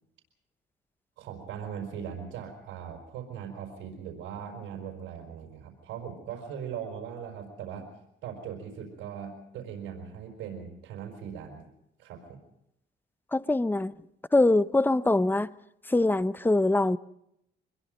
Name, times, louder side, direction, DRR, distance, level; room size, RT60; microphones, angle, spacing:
voice 1, 1.2-7.9 8.2-11.7 12.0-12.4, right 8 dB, 90° right, 5.1 m, -39 dB
voice 2, 13.3-13.9 14.3-15.5 15.9-17.0, left 2 dB, 10° left, 0.8 m, -23 dB
25.5 x 21.5 x 5.3 m
cardioid pair, 90°, 20 cm